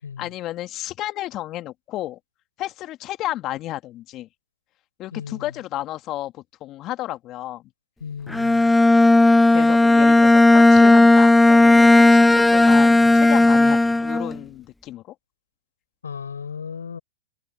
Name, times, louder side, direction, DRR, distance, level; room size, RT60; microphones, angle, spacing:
voice 1, 0.2-2.2 2.6-4.3 5.0-7.6 9.5-15.1, left 15 dB, 35° left, 2.4 m, -32 dB
voice 2, 5.1-5.5 8.0-8.7 16.0-17.0, left 6 dB, 85° left, 7.0 m, -35 dB
Bowed string instrument, 8.3-14.4, left 2 dB, 5° left, 0.3 m, -14 dB
hypercardioid pair, 115°, 0 cm